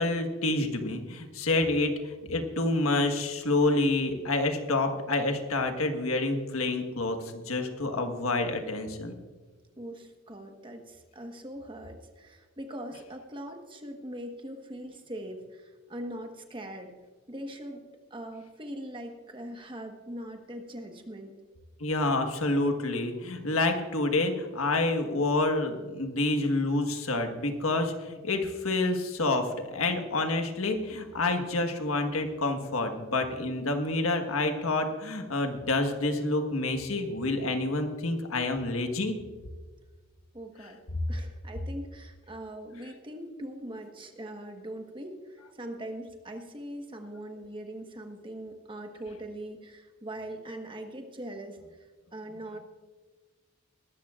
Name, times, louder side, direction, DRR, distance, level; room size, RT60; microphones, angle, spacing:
voice 1, 0.0-9.2 21.8-39.2, left 2 dB, 90° left, 5 dB, 1.5 m, -28 dB
voice 2, 9.8-16.9 17.3-17.8 18.1-21.3 40.3-40.8 41.1-51.6 52.1-52.6, right 1 dB, 25° right, 4 dB, 1.3 m, -41 dB
21.0 x 13.0 x 2.5 m, 1.4 s
head